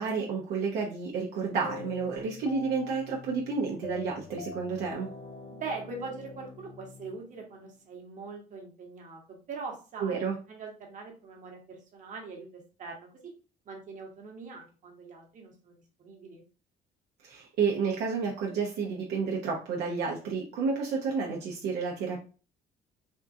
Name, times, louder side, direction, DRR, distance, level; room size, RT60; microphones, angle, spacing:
voice 1, 0.0-5.1 10.0-10.3 17.2-22.2, right 5 dB, 75° right, -2 dB, 0.7 m, -30 dB
sound 1, 1.6-7.8, left 4 dB, 40° left, 0.6 m, -45 dB
voice 2, 5.6-9.2 9.5-10.2 10.5-13.3 13.7-16.4, right 4 dB, 50° right, 1 dB, 1.2 m, -42 dB
3.6 x 2.4 x 2.6 m, 0.35 s
cardioid pair, 110°, 17 cm